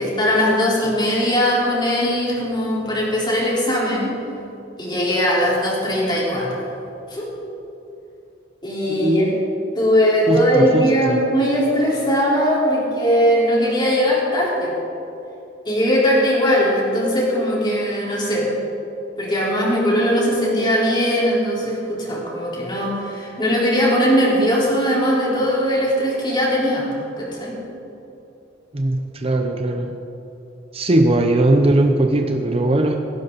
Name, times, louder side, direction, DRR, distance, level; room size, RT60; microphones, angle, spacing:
voice 1, 0.0-4.2 4.8-6.6 7.1-7.3 8.6-9.2 9.8-14.8 15.6-18.5 19.2-26.9 27.2-27.5, equal, 25° left, -5 dB, 4.2 m, -19 dB
voice 2, 8.9-9.4 10.3-11.2 28.7-29.9 30.7-33.0, right 1 dB, 30° right, 4 dB, 0.8 m, -19 dB
17.0 x 16.0 x 4.1 m, 2.9 s
head